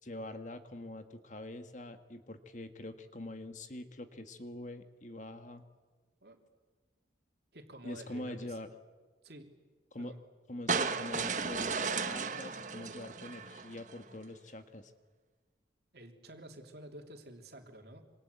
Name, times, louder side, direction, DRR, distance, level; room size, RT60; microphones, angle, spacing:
voice 1, 0.0-5.6 7.8-8.7 9.9-10.1 10.5-14.9, left 1 dB, 40° left, 8 dB, 1.7 m, -44 dB
voice 2, 7.5-8.6 9.2-9.6 10.0-10.2 15.9-18.0, right 1 dB, 60° right, 4 dB, 3.2 m, -50 dB
sound 1, 10.7-13.9, right 5 dB, 45° right, 1.3 m, -34 dB
26.5 x 26.5 x 8.2 m, 1.4 s
head